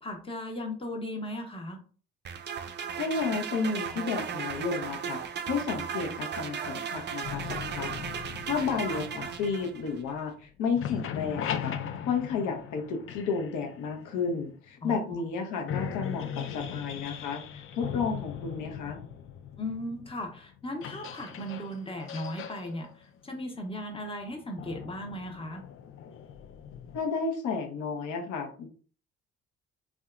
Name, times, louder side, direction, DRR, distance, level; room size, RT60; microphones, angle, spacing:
voice 1, 0.0-1.8 8.7-9.0 14.8-14.9 19.6-25.6, left 1 dB, 15° left, 3 dB, 0.8 m, -37 dB
sound 1, 2.2-10.0, right 7 dB, 35° right, 0.4 m, -36 dB
voice 2, 3.0-5.2 5.5-7.9 8.4-11.7 12.1-19.0 26.9-28.7, left 5 dB, 65° left, 4 dB, 0.7 m, -32 dB
sound 2, 7.2-10.4 10.7-14.6 15.2-15.3 15.6-27.0, left 8 dB, 45° left, 0.4 m, -39 dB
2.7 x 2.3 x 2.3 m, 0.40 s
hypercardioid pair, 55°, 32 cm